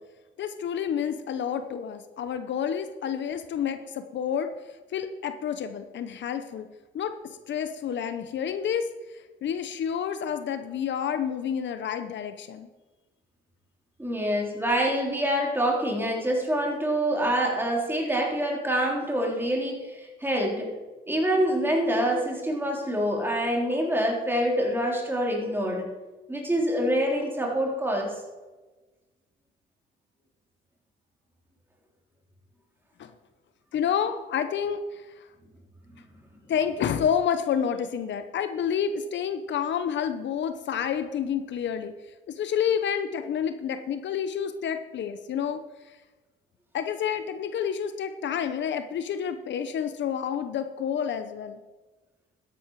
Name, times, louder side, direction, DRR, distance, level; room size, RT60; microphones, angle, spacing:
voice 1, 0.4-4.5 4.9-6.7 6.9-12.7 33.0-33.1 33.7-35.3 36.5-41.9 42.3-46.0 46.7-51.6, left 8 dB, 65° left, 10 dB, 0.9 m, -29 dB
voice 2, 14.0-20.8 21.1-25.9 26.3-28.2, equal, 10° right, -1 dB, 3.6 m, -26 dB
13.0 x 11.0 x 4.8 m, 1.2 s
cardioid pair, 90°, 20 cm